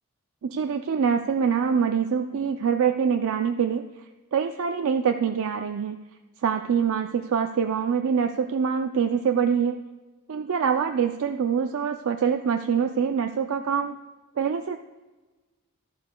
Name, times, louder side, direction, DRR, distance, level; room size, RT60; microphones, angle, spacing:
voice 1, 0.4-3.9 4.3-6.0 6.4-9.8 10.3-14.0 14.4-14.8, right 7 dB, 65° right, 6 dB, 0.4 m, -24 dB
12.5 x 11.0 x 2.2 m, 1.2 s
head